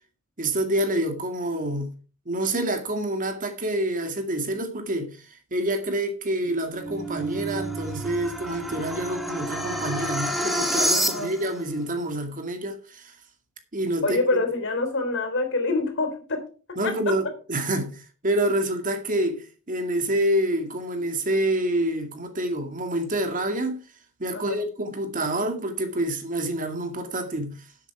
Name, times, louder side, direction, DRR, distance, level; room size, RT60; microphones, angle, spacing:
voice 1, 0.4-1.9 2.3-5.3 5.5-13.2 13.7-14.4 16.8-23.8 24.2-27.6, right 1 dB, 40° right, 2.1 m, -27 dB
sound 1, 6.4-11.6, equal, ahead, 1.7 m, -29 dB
voice 2, 11.0-11.3 14.0-17.2 24.3-24.6, left 3 dB, 60° left, 3.5 m, -26 dB
12.0 x 7.9 x 4.5 m
head